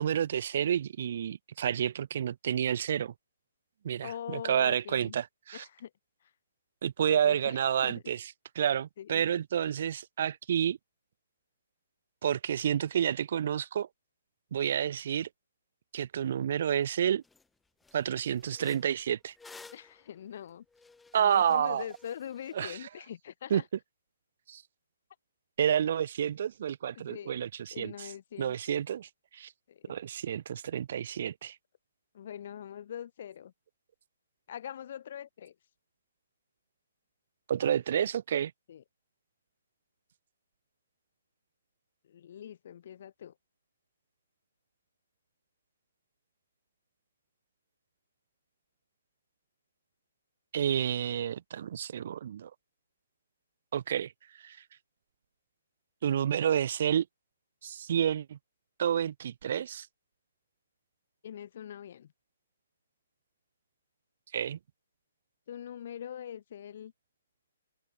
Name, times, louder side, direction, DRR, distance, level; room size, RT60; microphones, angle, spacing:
voice 1, 0.0-3.1 3.8-5.6 6.8-8.2 8.6-10.8 12.2-13.9 14.5-15.3 15.9-17.2 17.9-19.3 21.1-21.8 22.6-22.8 23.5-23.6 24.5-24.6 25.6-28.1 28.4-29.5 29.9-31.6 37.5-38.5 50.5-52.5 53.7-54.1 54.4-54.6 56.0-57.0 57.6-58.4 58.8-59.9 64.3-64.6, right 9 dB, 55° right, 0.6 m, -29 dB
voice 2, 4.0-5.1 5.5-5.9 6.2-6.3 7.1-7.6 7.8-8.0 9.0-9.2 19.7-20.6 21.1-23.6 26.9-28.8 29.7-30.0 32.1-33.5 34.5-35.5 38.7-38.8 42.0-43.3 61.2-62.1 65.5-66.9, left 9 dB, 55° left, 1.3 m, -43 dB
sound 1, 16.8-16.9 17.2-17.5 17.8-22.6, left 4 dB, 5° left, 0.7 m, -55 dB
open air
hypercardioid pair, 150°, 0 cm